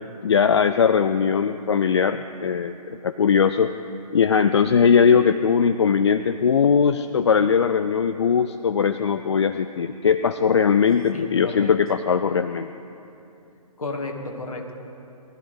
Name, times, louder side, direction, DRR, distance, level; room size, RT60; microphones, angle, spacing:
voice 1, 0.2-2.8 3.0-3.7 4.1-12.7, left 6 dB, 45° left, 10 dB, 0.4 m, -20 dB
voice 2, 11.1-11.7 13.8-14.7, left 2 dB, 60° left, 2 dB, 2.2 m, -32 dB
23.0 x 13.5 x 3.6 m, 2.8 s
figure-of-eight pair, 135°, 20 cm